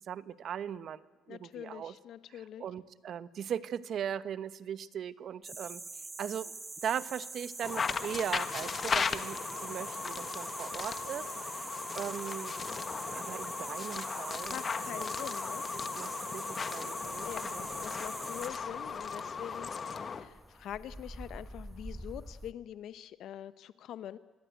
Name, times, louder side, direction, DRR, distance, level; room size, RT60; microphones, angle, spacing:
voice 1, 0.1-1.9 2.3-5.8 6.2-6.5 6.8-12.6 13.1-14.6 14.9-15.1 15.9-17.7, right 9 dB, 65° right, 15 dB, 1.0 m, -39 dB
voice 2, 1.3-2.6 14.5-15.6 17.2-17.4 17.7-24.2, left 11 dB, 75° left, 14 dB, 0.8 m, -44 dB
sound 1, 5.4-18.5, right 3 dB, 25° right, 1.7 m, -44 dB
sound 2, 7.6-20.3, left 5 dB, 45° left, 1.4 m, -37 dB
sound 3, 17.0-22.5, equal, 5° right, 1.3 m, -49 dB
25.0 x 17.0 x 9.2 m, 1.4 s
supercardioid pair, 70°, 0 cm